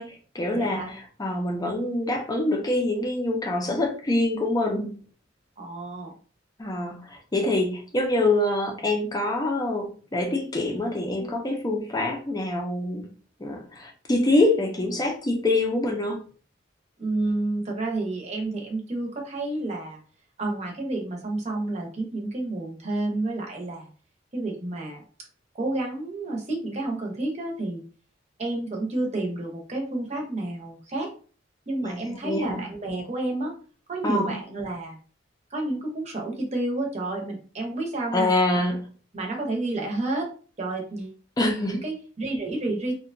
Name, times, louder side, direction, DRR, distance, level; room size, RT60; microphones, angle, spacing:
voice 1, 0.0-5.0 6.6-13.1 13.4-16.2 31.8-32.6 34.0-34.4 38.1-38.8 41.4-41.8, left 2 dB, 20° left, 2 dB, 0.4 m, -25 dB
voice 2, 0.5-1.0 5.6-6.1 17.0-20.0 20.4-23.9 24.3-25.0 25.5-27.8 28.4-31.1 31.7-33.5 33.9-35.0 35.5-38.6 39.1-40.3 40.6-41.2 41.7-42.9, right 2 dB, 35° right, 0 dB, 0.7 m, -30 dB
2.7 x 2.1 x 2.5 m, 0.39 s
head